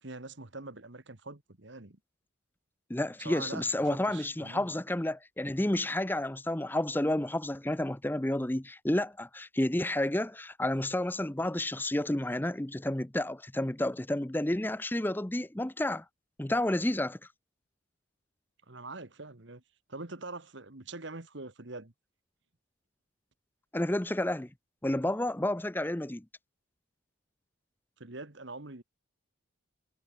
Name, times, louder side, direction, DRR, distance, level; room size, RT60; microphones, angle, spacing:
voice 1, 0.0-2.0 3.2-4.7 18.7-19.6 19.9-21.9 28.0-28.8, right 3 dB, 60° right, 1.8 m, -44 dB
voice 2, 2.9-16.0 16.4-17.2 23.7-24.5 24.8-26.2, left 1 dB, 10° left, 0.6 m, -30 dB
head